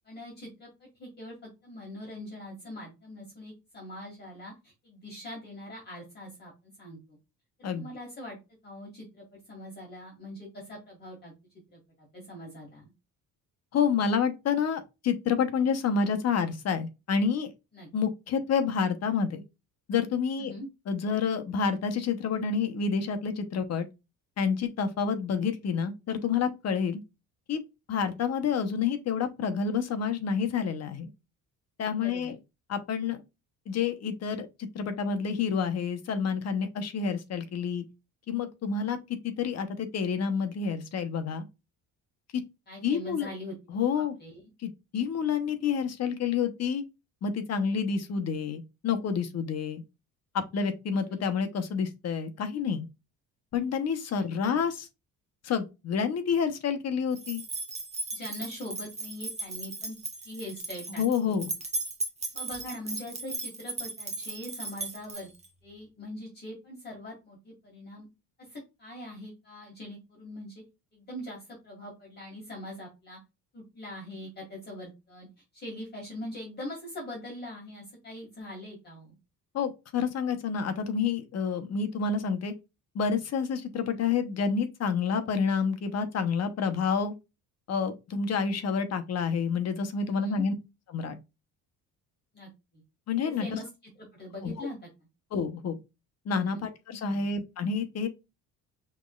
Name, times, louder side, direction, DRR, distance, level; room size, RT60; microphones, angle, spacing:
voice 1, 0.0-7.2 7.6-8.4 8.6-11.3 11.7-12.9 17.7-17.9 20.4-20.7 32.0-32.3 42.7-43.6 44.0-44.4 51.1-51.2 54.1-54.6 58.1-60.0 60.2-61.4 62.3-65.3 65.6-68.1 68.5-70.6 70.9-73.2 73.5-75.3 75.5-79.2 90.1-90.4 92.3-92.8 93.2-93.7 94.1-94.9 96.4-96.6 97.1-97.3, left 1 dB, 30° left, 2.0 m, -42 dB
voice 2, 13.7-17.5 17.9-19.4 19.9-20.5 20.9-23.9 24.4-27.0 27.5-27.6 27.9-31.1 31.8-32.4 32.7-33.2 33.7-37.8 38.3-39.0 39.2-41.5 42.3-42.4 42.8-43.3 43.7-44.1 44.6-46.8 47.2-49.8 50.3-52.9 53.5-54.9 55.4-57.4 61.0-61.5 79.5-82.5 82.9-87.1 87.7-90.5 90.9-91.2 93.1-93.6 94.4-94.7 95.3-95.8 96.3-98.1, left 6 dB, 45° left, 0.9 m, -29 dB
sound 1, 57.2-65.5, right 2 dB, 20° right, 0.9 m, -36 dB
5.9 x 3.2 x 2.4 m
cardioid pair, 135°, 36 cm